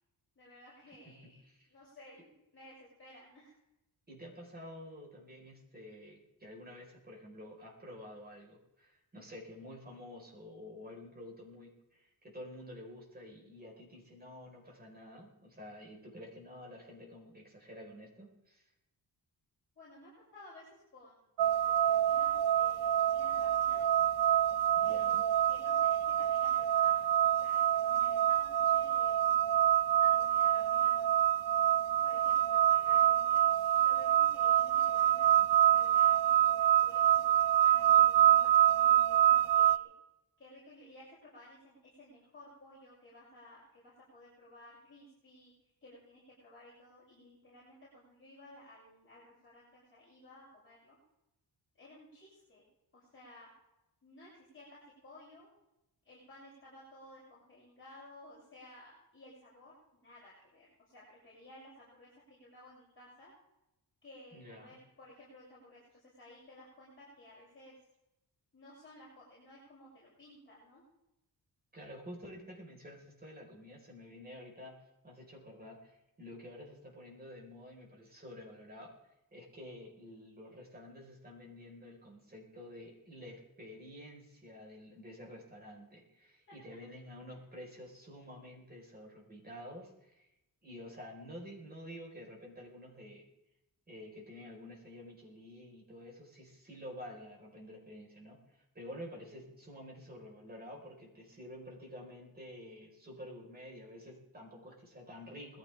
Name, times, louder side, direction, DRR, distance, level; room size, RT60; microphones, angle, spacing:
voice 1, 0.4-1.4 1.7-3.5 19.8-21.3 21.6-23.8 24.8-29.6 29.9-31.0 32.0-33.4 33.8-39.9 40.4-51.0 51.7-52.7 52.9-53.5 54.0-55.5 56.0-63.3 64.0-67.7 68.5-70.8 86.5-86.8 87.3-87.4, left 1 dB, 30° left, -8 dB, 7.2 m, -56 dB
voice 2, 1.0-1.7 4.1-18.6 24.7-25.2 64.3-64.8 71.7-78.9 79.3-90.3 90.6-93.3 93.9-105.6, left 1 dB, 25° right, -2 dB, 4.8 m, -50 dB
sound 1, 21.4-39.8, right 11 dB, 80° right, 0.7 m, -26 dB
21.0 x 14.5 x 3.6 m, 0.91 s
wide cardioid pair, 120°, 40 cm